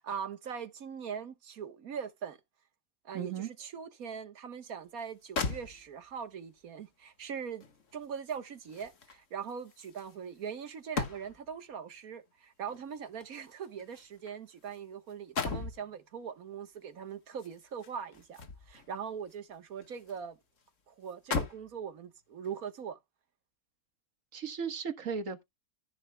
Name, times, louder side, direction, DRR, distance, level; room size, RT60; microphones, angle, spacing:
voice 1, 0.0-2.4 3.0-7.6 7.9-20.4 20.9-23.0, right 7 dB, 85° right, 1.7 m, -41 dB
voice 2, 3.1-3.5 24.3-25.4, right 6 dB, 65° right, 1.8 m, -36 dB
sound 1, 5.0-5.1 5.4-6.2 7.6-11.6 12.7-14.8 15.1-15.8 17.3-18.9 19.3-20.2 20.6-20.7 21.1-21.8 22.4-22.6, left 4 dB, 60° left, 1.8 m, -39 dB
13.5 x 10.5 x 2.2 m
omnidirectional pair, 1.5 m